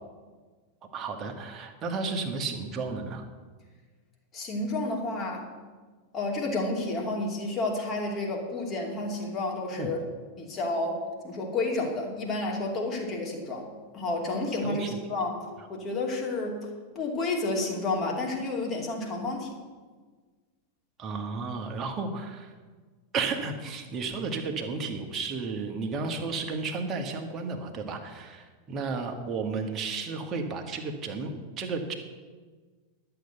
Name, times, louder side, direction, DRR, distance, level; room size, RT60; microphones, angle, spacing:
voice 1, 0.9-3.2 9.7-9.9 14.6-14.9 21.0-22.5 23.1-31.3 31.6-32.0, right 4 dB, 25° right, 3 dB, 1.7 m, -33 dB
voice 2, 4.3-5.5 6.1-10.0 10.4-14.8 15.1-16.7 16.9-19.6, left 2 dB, 30° left, 0 dB, 2.8 m, -30 dB
11.5 x 7.0 x 8.0 m, 1.4 s
figure-of-eight pair, 90°, 0 cm